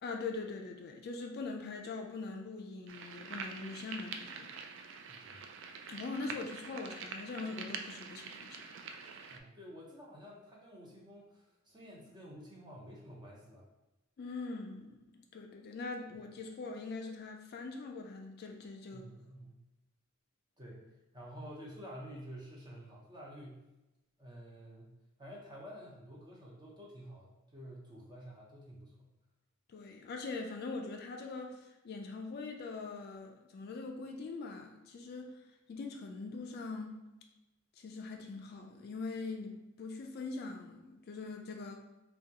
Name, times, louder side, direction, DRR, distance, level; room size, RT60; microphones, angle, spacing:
voice 1, 0.0-4.5 5.9-9.0 14.2-19.1 29.7-35.3 35.7-37.0 37.8-41.8, left 3 dB, 50° left, 3 dB, 0.3 m, -42 dB
sound 1, 2.9-9.4, right 5 dB, 60° right, 0.3 m, -45 dB
voice 2, 5.1-5.4 9.3-13.7 18.9-19.6 20.6-20.8 21.1-23.6 24.2-24.9 25.2-29.1, equal, 20° right, -4 dB, 0.7 m, -50 dB
3.5 x 2.3 x 2.8 m, 1.0 s
head